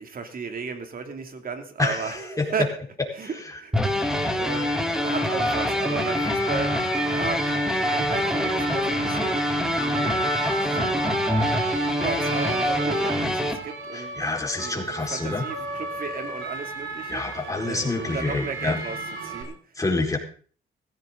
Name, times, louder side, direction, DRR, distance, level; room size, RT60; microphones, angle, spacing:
voice 1, 0.0-2.7 3.1-11.1 11.6-14.2 14.6-19.8, right 5 dB, 45° right, 6 dB, 2.8 m, -35 dB
voice 2, 1.8-2.5 3.2-3.3 4.1-4.2 13.9-15.4 17.1-18.8 19.8-20.2, left 3 dB, 15° left, 0 dB, 4.6 m, -27 dB
sound 1, 3.7-13.5, left 1 dB, 5° right, 3.6 m, -25 dB
sound 2, 4.3-19.4, right 3 dB, 85° right, 4.6 m, -33 dB
16.0 x 15.5 x 3.9 m, 0.43 s
cardioid pair, 90°, 20 cm